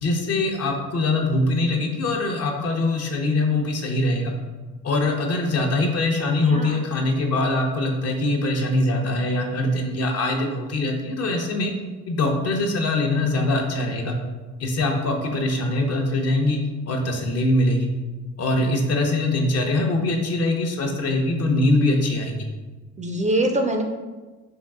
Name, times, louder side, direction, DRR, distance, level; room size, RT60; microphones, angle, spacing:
voice 1, 0.0-4.3 4.8-11.7 12.1-14.1 14.6-16.6 16.9-17.9 18.4-22.4, left 2 dB, 55° left, 2 dB, 0.7 m, -23 dB
voice 2, 6.5-6.8 18.6-18.7 23.0-23.8, right 1 dB, 25° right, 3 dB, 0.4 m, -24 dB
3.6 x 2.4 x 3.5 m, 1.3 s
cardioid pair, 90°, 30 cm